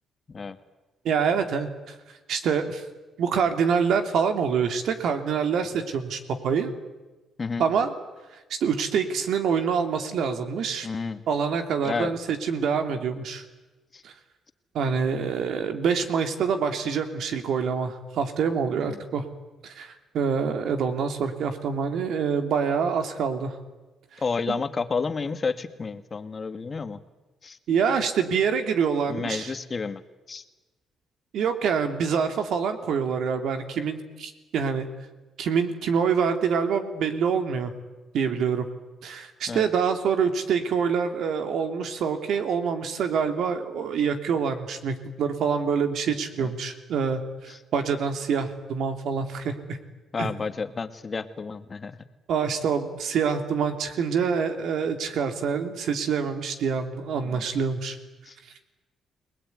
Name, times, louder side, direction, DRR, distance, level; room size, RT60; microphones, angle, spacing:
voice 1, 1.0-1.9 2.3-2.8 3.2-6.7 7.6-7.9 8.5-10.9 11.3-13.4 14.0-14.1 14.7-19.3 19.6-23.6 24.5-24.6 27.7-29.5 31.3-34.9 35.4-37.7 38.1-38.7 39.0-49.8 50.2-50.3 52.3-58.0, right 6 dB, 70° right, 7 dB, 3.0 m, -26 dB
voice 2, 10.8-11.2 11.8-12.1 13.9-14.0 18.8-19.0 24.2-27.0 27.4-27.6 29.1-30.0 30.3-30.4 39.5-39.7 46.4-46.5 47.5-47.6 50.1-52.0 57.2-57.4 58.2-58.3, left 4 dB, 35° left, 10 dB, 1.8 m, -31 dB
29.5 x 19.5 x 9.5 m, 1.2 s
cardioid pair, 90°, 0 cm